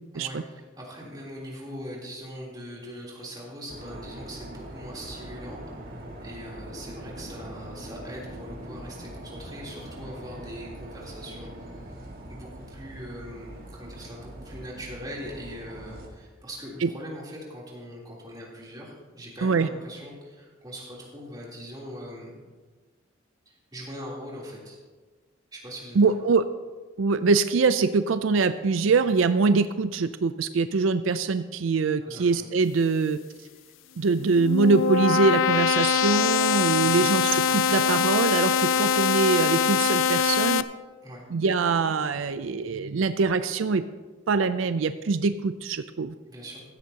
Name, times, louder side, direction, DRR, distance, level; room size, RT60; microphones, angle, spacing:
voice 1, 0.1-5.6 5.9-12.0 12.3-22.4 23.7-24.8 25.5-26.1 32.0-32.4 36.8-37.1 41.0-41.2 46.3-46.6, equal, 20° right, -5 dB, 3.4 m, -41 dB
sound 1, 3.7-16.1, right 1 dB, 50° right, 2.1 m, -42 dB
voice 2, 26.0-26.4 27.0-33.2 34.0-40.6 41.3-43.8 44.3-46.1, right 4 dB, 85° right, 11 dB, 0.5 m, -23 dB
sound 2, 34.1-40.6, left 7 dB, 85° left, 0.5 m, -23 dB
15.5 x 14.0 x 2.9 m, 1.4 s
head